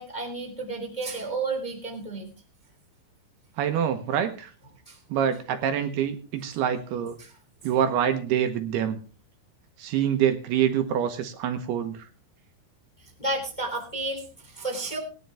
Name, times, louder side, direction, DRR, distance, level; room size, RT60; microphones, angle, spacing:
voice 1, 0.0-2.3 4.9-5.0 7.2-7.3 13.0-15.0, right 2 dB, 15° left, 2 dB, 2.0 m, -32 dB
voice 2, 3.6-4.5 5.1-7.2 7.6-9.0 9.8-12.1, right 9 dB, 70° right, 7 dB, 2.9 m, -26 dB
19.5 x 10.5 x 3.4 m, 0.36 s
omnidirectional pair, 5.0 m